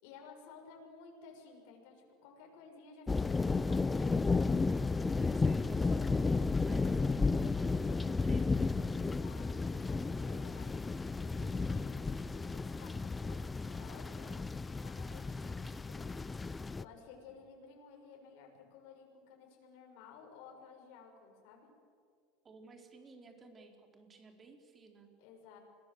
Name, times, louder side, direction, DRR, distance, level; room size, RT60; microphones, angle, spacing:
voice 1, 0.0-4.3 9.0-14.3 14.8-16.2 16.8-21.7 25.2-25.6, left 5 dB, 70° left, 1 dB, 6.7 m, -55 dB
sound 1, 3.1-16.8, left 4 dB, 15° left, 0.6 m, -33 dB
voice 2, 5.1-8.7 22.4-25.1, right 4 dB, 25° right, 4 dB, 4.3 m, -56 dB
28.0 x 21.5 x 8.1 m, 2.2 s
supercardioid pair, 115°, 0 cm